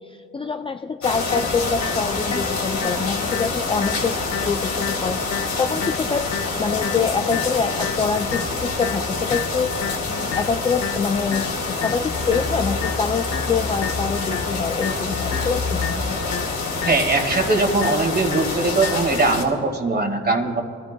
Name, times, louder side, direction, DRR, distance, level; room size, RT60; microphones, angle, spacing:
voice 1, 0.1-16.2, left 5 dB, 20° left, 6 dB, 0.3 m, -25 dB
sound 1, 1.0-19.4, left 3 dB, 75° left, 2.7 m, -26 dB
sound 2, 1.3-19.3, left 8 dB, 60° left, 1.1 m, -33 dB
voice 2, 16.9-20.6, right 3 dB, 35° right, 3 dB, 1.9 m, -21 dB
25.0 x 14.0 x 2.2 m, 3.0 s
cardioid pair, 90°, 30 cm